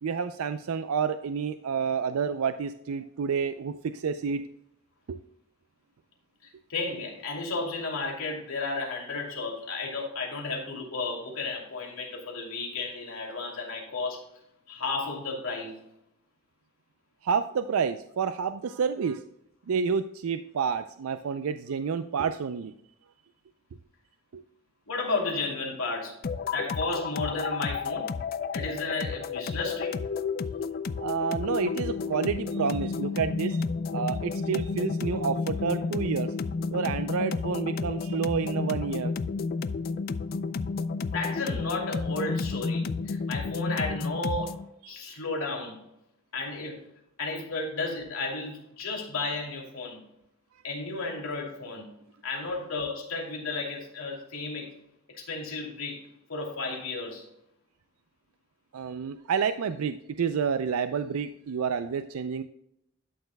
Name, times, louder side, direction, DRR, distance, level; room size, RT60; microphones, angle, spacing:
voice 1, 0.0-4.4 5.1-5.2 17.2-19.2 19.7-22.7 24.3-24.4 31.0-33.6 33.9-36.3 36.7-39.1 44.8-45.2 58.7-62.4, right 6 dB, 85° right, 10 dB, 0.4 m, -29 dB
voice 2, 6.7-14.3 14.7-15.9 24.9-26.2 26.5-28.1 28.5-30.0 41.1-44.6 44.9-45.8 46.3-46.8 47.2-50.0 50.6-51.9 52.2-54.8 55.1-57.3, left 3 dB, 75° left, 0 dB, 2.7 m, -33 dB
sound 1, 26.2-44.7, left 4 dB, 45° left, 0.3 m, -31 dB
12.0 x 6.6 x 2.2 m, 0.77 s
head